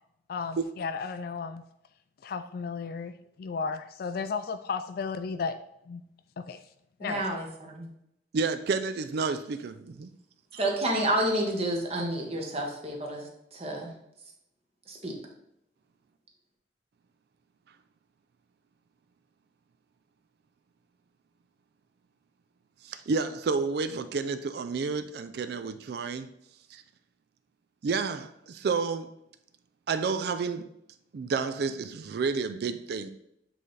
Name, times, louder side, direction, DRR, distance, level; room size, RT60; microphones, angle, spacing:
voice 1, 0.3-1.6 2.2-5.6 5.9-6.0 6.4-6.6 7.0-7.4, left 5 dB, 55° left, 9 dB, 0.3 m, -34 dB
voice 2, 7.0-7.9 10.6-13.3 13.5-13.9 14.9-15.2, right 1 dB, 35° right, 1 dB, 1.1 m, -29 dB
voice 3, 8.3-10.1 10.5-10.6 22.8-26.3 26.7-26.8 27.8-29.1 29.9-30.7 31.1-33.1, right 4 dB, 60° right, 10 dB, 0.4 m, -30 dB
7.6 x 3.3 x 3.9 m, 0.79 s
head